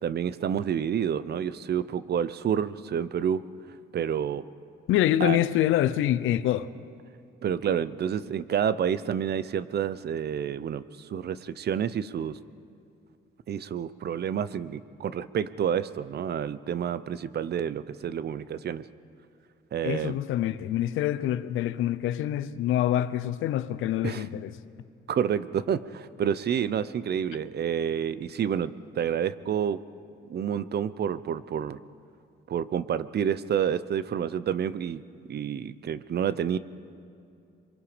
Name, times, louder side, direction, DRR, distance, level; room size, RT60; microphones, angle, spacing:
voice 1, 0.0-3.4 3.9-4.4 5.2-5.4 7.4-12.4 13.5-18.8 19.7-20.2 24.0-24.3 25.1-29.8 30.3-31.8 32.5-35.0 35.3-36.6, right 8 dB, 55° right, 0.8 m, -29 dB
voice 2, 4.9-6.7 19.8-24.5, left 12 dB, 90° left, 0.8 m, -26 dB
27.0 x 23.0 x 5.1 m
cardioid pair, 90°, 20 cm